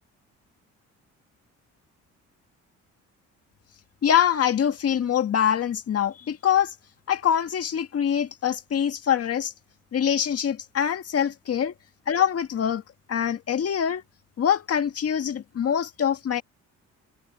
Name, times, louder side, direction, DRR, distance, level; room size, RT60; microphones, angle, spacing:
voice 1, 4.0-6.7 7.1-9.5 9.9-11.7 12.1-12.8 13.1-14.0 14.4-16.4, left 9 dB, 50° left, 1.8 m, -24 dB
cardioid pair, 90°, 30 cm